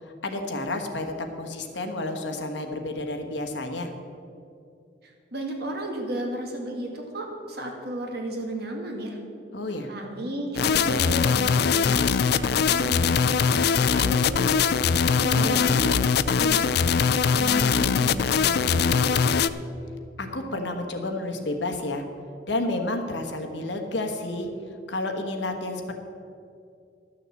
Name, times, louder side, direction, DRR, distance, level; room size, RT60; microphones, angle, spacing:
voice 1, 0.2-3.9 9.5-9.9 15.4-15.7 20.2-22.0 22.5-24.5 24.9-25.9, left 2 dB, 80° left, 5 dB, 1.3 m, -30 dB
voice 2, 5.0-9.2 9.9-14.6 15.2-16.7 17.3-19.2, right 1 dB, 65° right, 1 dB, 2.0 m, -34 dB
sound 1, 10.6-19.5, left 6 dB, 60° left, 0.4 m, -22 dB
12.5 x 6.5 x 7.6 m, 2.5 s
head